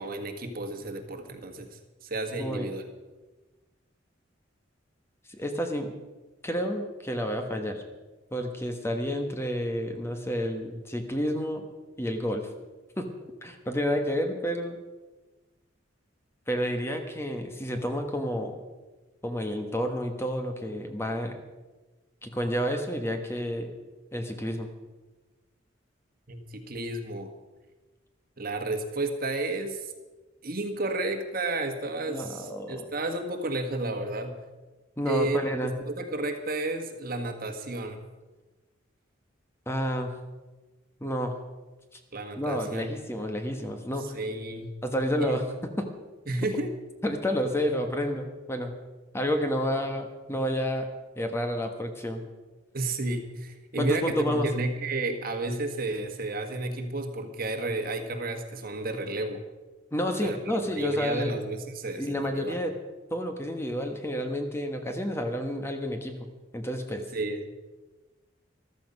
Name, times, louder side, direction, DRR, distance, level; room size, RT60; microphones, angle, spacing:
voice 1, 0.0-2.8 26.3-27.3 28.4-29.9 30.4-34.4 35.1-35.4 35.9-38.0 42.1-42.9 44.1-44.7 45.2-45.3 46.3-46.7 52.7-59.4 60.2-60.4 60.7-62.6 67.1-67.5, right 2 dB, 50° right, 6 dB, 1.5 m, -32 dB
voice 2, 5.3-5.9 6.4-7.8 8.3-11.6 12.0-12.5 13.0-13.1 13.4-14.8 16.5-18.6 19.2-21.4 22.2-23.7 24.1-24.7 32.1-32.9 35.0-35.7 39.7-40.1 41.0-41.3 42.4-44.2 44.8-45.9 47.0-48.7 49.1-50.9 51.2-52.2 53.8-54.5 59.9-61.3 62.0-62.7 63.1-67.0, equal, 15° left, 5 dB, 1.2 m, -30 dB
14.0 x 13.0 x 5.4 m, 1.2 s
head